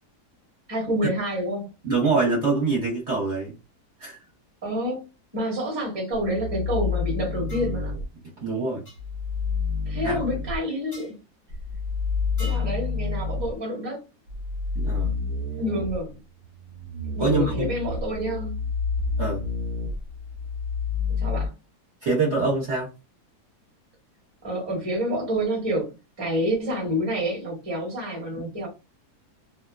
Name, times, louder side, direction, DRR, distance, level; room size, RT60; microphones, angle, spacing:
voice 1, 0.7-1.7 4.6-5.0 5.3-7.9 9.9-11.1 12.4-14.0 15.6-16.2 17.1-18.6 21.1-21.5 24.4-25.9 26.2-28.7, equal, 20° right, 1.0 m, -28 dB
voice 2, 1.8-3.5 4.0-4.2 8.4-8.8 10.0-10.3 14.7-15.2 17.2-17.7 19.2-19.4 22.0-22.9, right 3 dB, 50° right, 1.1 m, -24 dB
sound 1, 6.1-8.0 9.0-10.6 11.5-13.5 14.3-21.5, left 4 dB, 70° right, 1.0 m, -29 dB
sound 2, 7.5-7.8 8.8-9.0 10.9-11.1 12.4-12.8, equal, 15° left, 0.7 m, -43 dB
2.7 x 2.2 x 2.3 m
omnidirectional pair, 1.7 m